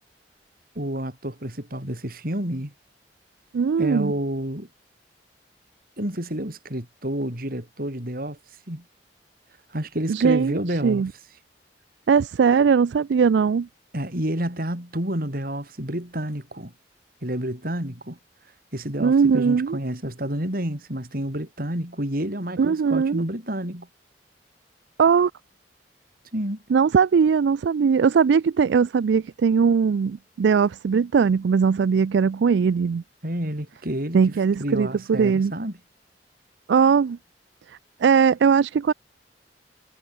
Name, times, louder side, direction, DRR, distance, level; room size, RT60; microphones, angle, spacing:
voice 1, 0.8-2.7 3.8-4.7 6.0-8.4 8.7-8.8 9.7-11.0 13.9-16.7 17.2-18.2 18.7-23.9 26.3-26.6 33.2-35.8, right 1 dB, 55° right, 5.6 m, -29 dB
voice 2, 3.5-4.1 10.1-11.1 12.1-13.7 19.0-19.8 22.6-23.2 25.0-25.3 26.7-33.0 34.1-35.5 36.7-37.2 38.0-38.9, right 6 dB, 80° right, 0.4 m, -20 dB
head